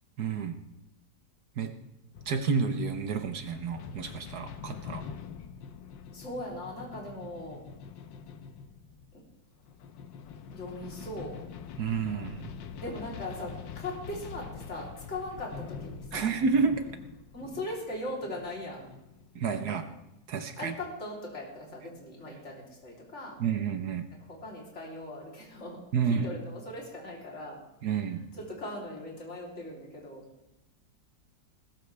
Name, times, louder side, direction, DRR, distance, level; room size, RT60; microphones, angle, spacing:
voice 1, 0.2-0.5 1.6-1.8 2.3-5.0 11.8-12.5 16.1-16.9 19.3-19.9 20.3-20.7 23.4-24.1 25.9-26.3 27.8-28.3, right 5 dB, 65° right, 8 dB, 1.5 m, -30 dB
sound 1, 2.1-19.7, left 7 dB, 90° left, 1.6 m, -45 dB
voice 2, 6.1-7.6 9.1-9.2 10.5-11.4 12.8-16.3 17.3-18.9 20.6-23.4 24.2-25.8 26.1-27.6 27.9-30.2, left 1 dB, 40° left, -3 dB, 3.8 m, -39 dB
20.5 x 14.0 x 3.4 m, 0.90 s
omnidirectional pair, 2.0 m